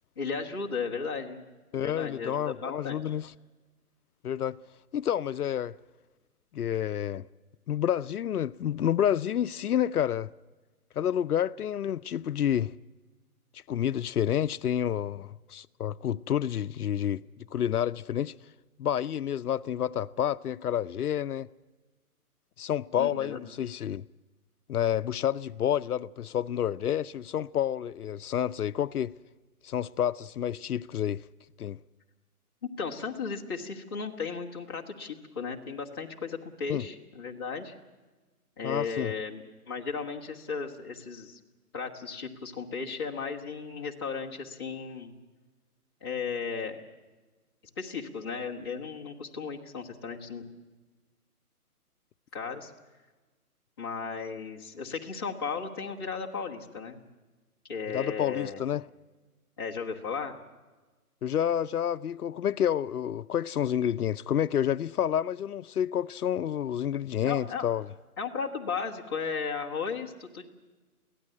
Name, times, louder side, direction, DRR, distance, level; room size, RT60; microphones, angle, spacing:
voice 1, 0.2-1.5 1.7-3.1 23.0-23.4 32.6-37.7 38.6-41.4 41.7-45.1 46.0-46.8 47.8-50.5 52.3-52.7 53.8-57.0 57.7-58.6 59.6-60.3 67.2-67.6 68.2-70.4, left 5 dB, 15° left, 1.2 m, -35 dB
voice 2, 1.7-3.3 4.2-4.6 4.9-5.7 6.5-7.3 7.7-10.3 11.0-12.7 13.7-17.2 17.5-18.3 18.8-21.5 22.6-24.0 24.7-29.1 29.6-31.2 31.6-31.8 36.7-36.8 38.6-39.1 57.9-58.8 61.2-67.9, left 10 dB, 80° left, 0.6 m, -29 dB
23.5 x 17.0 x 7.6 m
hypercardioid pair, 170°, 45 cm